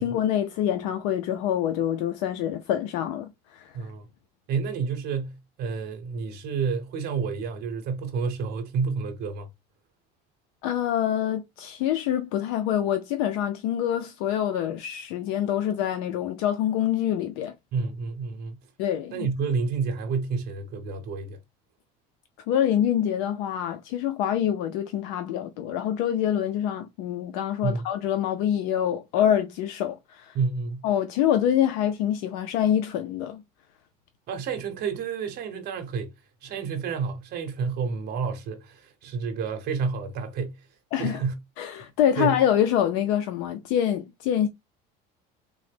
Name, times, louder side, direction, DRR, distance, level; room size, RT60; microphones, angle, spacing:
voice 1, 0.0-3.7 10.6-17.5 18.8-19.3 22.5-30.4 30.8-33.4 40.9-41.2 41.6-44.5, left 10 dB, 80° left, 0.4 m, -26 dB
voice 2, 3.7-4.1 4.5-9.5 17.7-18.6 19.1-21.4 27.6-27.8 30.3-30.8 34.3-36.1 36.4-40.7 41.0-41.3 42.2-42.4, right 5 dB, 55° right, 0.8 m, -29 dB
3.7 x 2.0 x 3.3 m
cardioid pair, 115°, 20 cm